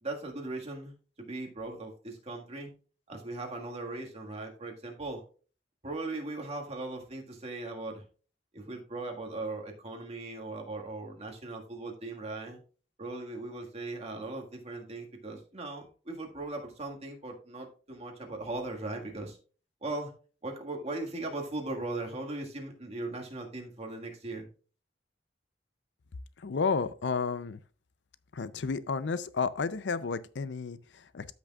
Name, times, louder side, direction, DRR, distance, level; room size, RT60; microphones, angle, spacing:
voice 1, 0.0-2.7 3.1-5.2 5.8-8.0 8.5-12.6 13.0-19.4 19.8-20.1 20.4-24.5, right 2 dB, 35° right, 1.8 m, -38 dB
voice 2, 26.4-27.6 28.3-31.3, left 5 dB, 75° left, 0.5 m, -32 dB
13.5 x 6.2 x 2.4 m
head